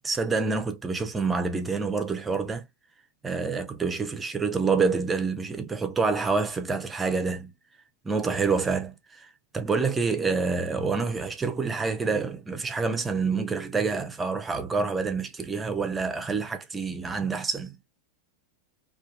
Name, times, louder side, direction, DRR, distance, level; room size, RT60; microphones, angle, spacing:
voice 1, 0.0-2.6 3.2-7.5 8.0-17.8, right 4 dB, 15° right, 0.5 m, -27 dB
2.5 x 2.4 x 2.5 m
figure-of-eight pair, 90°, 0 cm